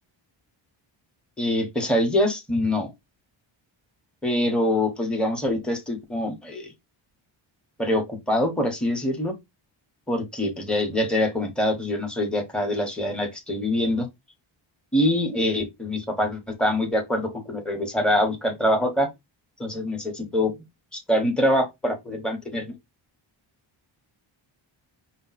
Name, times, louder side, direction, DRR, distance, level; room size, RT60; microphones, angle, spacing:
voice 1, 1.4-2.9 4.2-6.7 7.8-9.3 10.1-14.1 14.9-19.1 19.6-20.5 20.9-22.7, left 1 dB, ahead, 1.1 m, -24 dB
5.1 x 2.3 x 4.1 m
wide cardioid pair, 145°, 48 cm